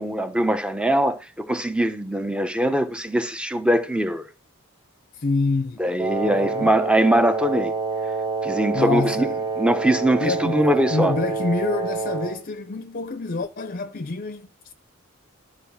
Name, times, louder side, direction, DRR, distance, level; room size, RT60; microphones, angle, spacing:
voice 1, 0.0-4.2 5.8-7.7 8.4-9.3 9.6-11.1, right 1 dB, 5° right, 1.0 m, -22 dB
voice 2, 5.1-6.0 6.2-6.7 8.7-9.5 10.2-14.7, left 3 dB, 45° left, 0.7 m, -27 dB
Wind instrument woodwind instrument, 6.0-12.4, right 4 dB, 20° right, 1.2 m, -27 dB
12.5 x 4.8 x 7.2 m
head